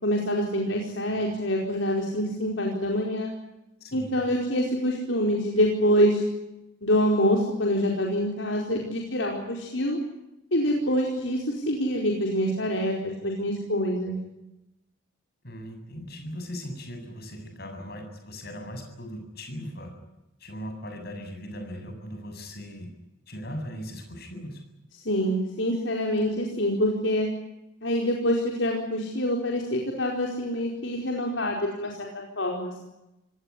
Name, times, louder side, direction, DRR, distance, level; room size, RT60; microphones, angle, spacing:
voice 1, 0.0-3.3 3.9-6.2 6.8-10.0 10.5-14.2 25.0-27.3 27.8-32.8, equal, 65° left, 0 dB, 4.8 m, -26 dB
voice 2, 3.8-4.2 15.4-19.9 20.4-22.9 23.3-24.6, equal, 50° left, 5 dB, 7.6 m, -38 dB
27.0 x 18.5 x 9.8 m, 0.92 s
head